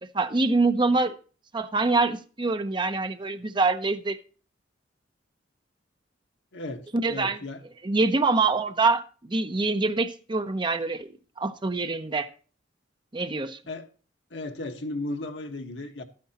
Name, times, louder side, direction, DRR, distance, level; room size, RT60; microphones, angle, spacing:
voice 1, 0.1-1.1 1.5-4.2 6.9-7.4 7.8-11.1 11.4-12.3 13.1-13.6, right 3 dB, 25° right, 0.7 m, -25 dB
voice 2, 6.5-7.6 13.7-13.9 14.3-16.0, left 2 dB, 70° left, 1.3 m, -35 dB
12.0 x 9.5 x 2.9 m
head